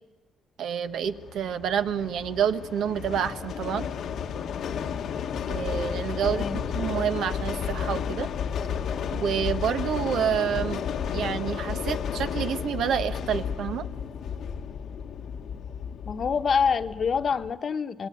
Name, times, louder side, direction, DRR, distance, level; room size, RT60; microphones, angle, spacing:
voice 1, 0.6-3.9 5.5-8.3 9.1-10.8 11.1-13.9, right 8 dB, 75° right, 9 dB, 1.3 m, -28 dB
sound 1, 1.0-17.5, left 7 dB, 70° left, 1.1 m, -32 dB
voice 2, 6.2-6.6 16.1-18.1, left 6 dB, 50° left, 9 dB, 1.1 m, -26 dB
26.5 x 21.0 x 9.6 m, 1.1 s
cardioid pair, 90°, 0 cm